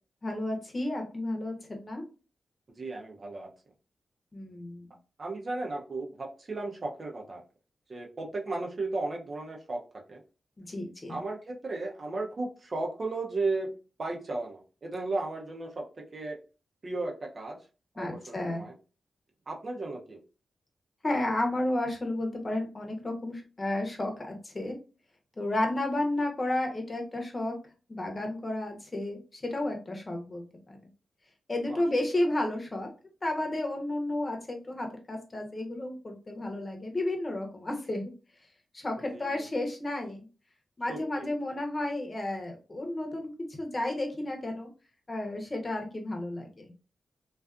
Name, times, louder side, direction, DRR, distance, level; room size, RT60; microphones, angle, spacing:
voice 1, 0.2-2.0 4.3-4.9 10.6-11.2 18.0-18.7 21.0-24.8 25.4-27.5 27.9-30.8 31.5-32.9 33.2-38.0 38.7-40.3 40.8-44.7 45.1-46.7, left 1 dB, 35° left, 3 dB, 0.8 m, -32 dB
voice 2, 2.8-3.5 5.2-7.4 7.9-9.8 10.1-10.2 11.1-16.4 16.8-17.6 18.0-18.7 19.5-20.2 31.7-31.8 39.1-39.4 40.9-41.3, right 2 dB, 50° right, 0 dB, 0.7 m, -35 dB
2.4 x 2.4 x 2.3 m, 0.34 s
cardioid pair, 50°, 0 cm